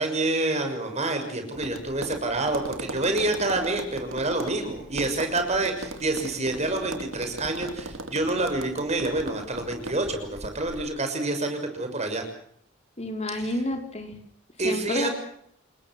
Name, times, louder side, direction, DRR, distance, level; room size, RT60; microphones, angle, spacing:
voice 1, 0.0-12.2 13.3-13.5 14.6-15.1, right 2 dB, 35° right, 6 dB, 6.3 m, -27 dB
Tap, 1.5-10.8, right 2 dB, 85° right, 3.1 m, -38 dB
voice 2, 13.0-14.2 14.6-15.1, left 1 dB, 35° left, 4 dB, 4.7 m, -30 dB
29.5 x 21.0 x 6.2 m, 0.67 s
head